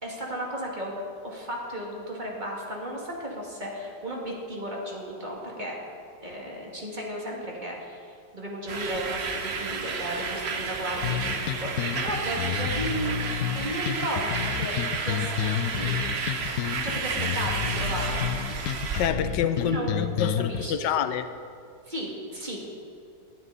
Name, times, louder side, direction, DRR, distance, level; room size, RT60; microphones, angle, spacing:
voice 1, 0.0-5.8 6.2-13.1 13.5-14.8 15.0-16.0 16.8-18.2 19.6-20.8 21.9-22.7, right 1 dB, 25° right, -2 dB, 2.5 m, -34 dB
sound 1, 8.7-19.1, right 5 dB, 45° right, 1.0 m, -31 dB
sound 2, 11.0-20.6, left 10 dB, 70° left, 0.8 m, -30 dB
voice 2, 18.9-21.3, left 8 dB, 90° left, 11 dB, 1.4 m, -27 dB
19.0 x 12.0 x 4.2 m, 2.3 s
omnidirectional pair, 1.9 m